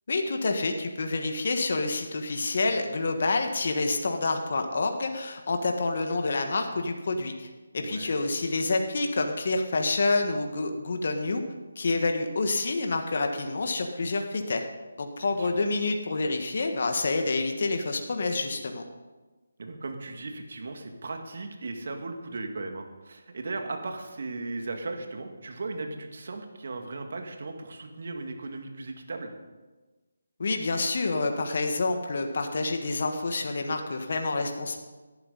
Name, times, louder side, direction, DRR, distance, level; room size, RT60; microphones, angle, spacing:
voice 1, 0.1-11.4 11.7-14.6 15.0-18.8 30.4-34.8, left 3 dB, 55° left, 5 dB, 1.6 m, -28 dB
voice 2, 7.8-8.2 15.4-15.6 19.6-29.3, right 3 dB, 55° right, 4 dB, 2.2 m, -37 dB
17.5 x 12.0 x 4.1 m, 1.2 s
figure-of-eight pair, 155°, 0 cm